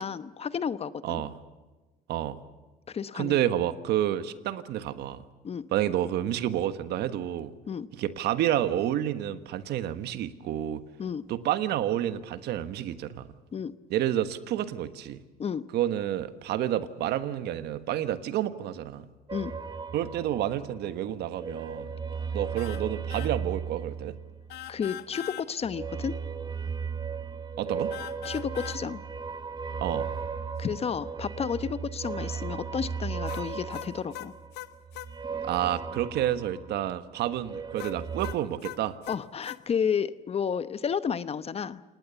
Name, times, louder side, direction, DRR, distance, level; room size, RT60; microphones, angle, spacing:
voice 1, 0.0-1.2 2.9-3.4 5.4-5.7 7.7-7.9 11.0-11.2 13.5-13.7 15.4-15.7 19.3-19.5 24.7-26.1 28.2-29.0 30.6-34.3 39.1-41.8, left 7 dB, 35° left, 14 dB, 1.0 m, -31 dB
voice 2, 3.1-5.2 5.7-7.5 7.9-10.8 11.3-13.3 13.9-15.2 15.7-19.0 19.9-21.9 22.3-24.1 27.6-27.9 29.8-30.1 35.4-39.0, right 12 dB, 75° right, 12 dB, 1.4 m, -29 dB
sound 1, 19.3-20.9 21.2-24.8 25.6-37.0 37.3-38.3, right 6 dB, 25° right, 1.1 m, -36 dB
sound 2, 22.6-22.8 23.1-23.3 24.5-25.5 27.9-28.8 33.3-35.1 37.8-39.6, left 15 dB, 80° left, 1.1 m, -41 dB
28.5 x 19.0 x 7.1 m, 1.2 s
cardioid pair, 110°, 17 cm